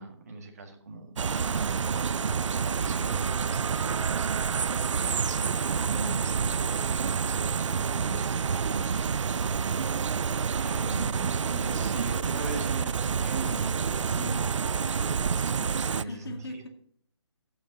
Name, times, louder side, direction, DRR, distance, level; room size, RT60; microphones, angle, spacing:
voice 1, 0.0-4.5 5.0-9.5 10.6-16.4, right 3 dB, 35° right, 2 dB, 1.8 m, -40 dB
sound 1, 1.2-16.0, right 6 dB, 85° right, 0.4 m, -28 dB
voice 2, 9.1-10.1 15.8-16.7, left 2 dB, 55° left, 4 dB, 2.2 m, -44 dB
15.0 x 5.9 x 3.9 m, 0.63 s
hypercardioid pair, 180°, 15 cm